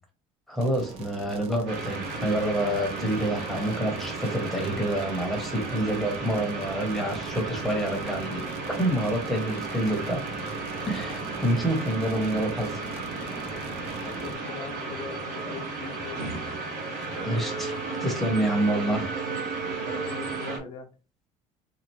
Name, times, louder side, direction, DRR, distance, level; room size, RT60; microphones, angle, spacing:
voice 1, 0.5-8.4 8.7-10.6 10.9-12.8 17.2-19.1, right 1 dB, ahead, 1 dB, 0.9 m, -27 dB
sound 1, 0.6-14.3, right 5 dB, 45° right, 0.8 m, -43 dB
sound 2, 1.7-20.6, right 3 dB, 65° right, 1.8 m, -34 dB
voice 2, 13.9-16.3 19.8-20.9, left 5 dB, 40° left, 0 dB, 0.5 m, -41 dB
4.2 x 2.5 x 3.0 m, 0.32 s
cardioid pair, 175°, 13 cm